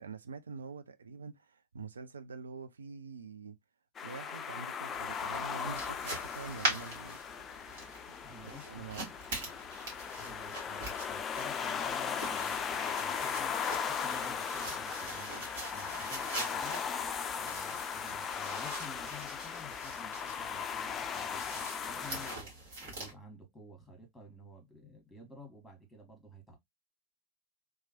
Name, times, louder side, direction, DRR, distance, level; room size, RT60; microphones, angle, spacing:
voice 1, 0.0-3.6 4.0-7.2 8.1-8.2 8.4-9.1, right 5 dB, 70° right, 0.3 m, -45 dB
sound 1, 4.0-22.4, left 7 dB, 25° left, 0.3 m, -38 dB
sound 2, 4.9-23.1, right 2 dB, 55° right, 1.5 m, -43 dB
voice 2, 8.2-9.2 10.2-16.8 17.3-22.5 22.8-26.6, equal, 5° left, 1.4 m, -52 dB
3.0 x 2.3 x 2.7 m
figure-of-eight pair, 90°, 0 cm